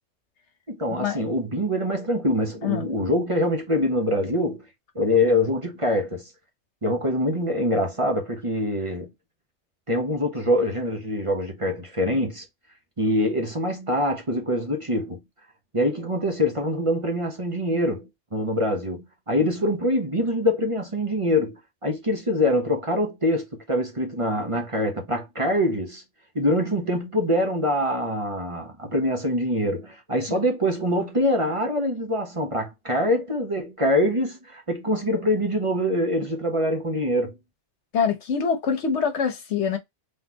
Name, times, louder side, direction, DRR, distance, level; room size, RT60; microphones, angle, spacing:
voice 1, 0.7-4.7 4.9-6.3 6.8-9.1 9.9-12.4 13.0-15.2 15.7-26.0 26.3-37.3, left 1 dB, 30° right, 1.0 m, -24 dB
voice 2, 37.9-39.8, left 6 dB, 75° left, 1.3 m, -24 dB
3.9 x 3.3 x 2.8 m
omnidirectional pair, 1.2 m